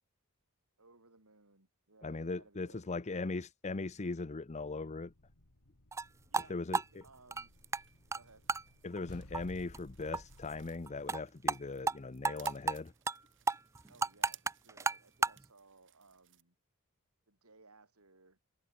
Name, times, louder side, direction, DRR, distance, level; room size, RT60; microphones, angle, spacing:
voice 1, 0.8-3.3 6.3-7.5 8.1-8.5 13.9-16.6 17.3-18.4, right 3 dB, 75° right, 4.4 m, -62 dB
voice 2, 2.0-5.1 6.5-7.0 8.8-12.9, left 3 dB, 30° left, 0.6 m, -39 dB
sound 1, 4.9-11.1, left 1 dB, 85° left, 2.7 m, -57 dB
sound 2, 5.9-6.1 6.3-6.5 6.7-7.8 8.1-8.2 8.5-8.6 9.0-9.1 9.3-9.4 9.7-9.8 10.1-10.2 10.5-10.6 10.9-11.2 11.5-11.6 11.9-12.0 12.2-12.8 13.1-13.2 13.5-15.4, right 4 dB, 15° right, 0.4 m, -32 dB
sound 3, 7.3-16.4, right 13 dB, 60° right, 5.7 m, -61 dB
head